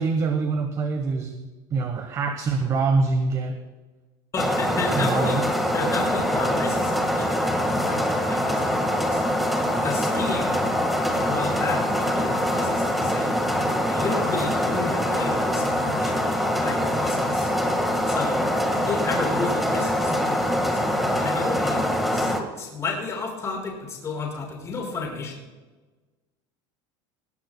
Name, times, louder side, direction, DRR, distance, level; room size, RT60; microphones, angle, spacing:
voice 1, 0.0-3.6 4.9-5.4, right 4 dB, 30° right, 6 dB, 1.1 m, -25 dB
voice 2, 4.3-9.2 9.8-10.6 11.0-13.3 13.9-17.5 18.1-21.8 22.1-25.4, left 4 dB, 25° left, -1 dB, 5.1 m, -32 dB
sound 1, 4.4-22.4, equal, ahead, 1.6 m, -24 dB
19.5 x 18.5 x 2.2 m, 1.2 s
cardioid pair, 155°, 12 cm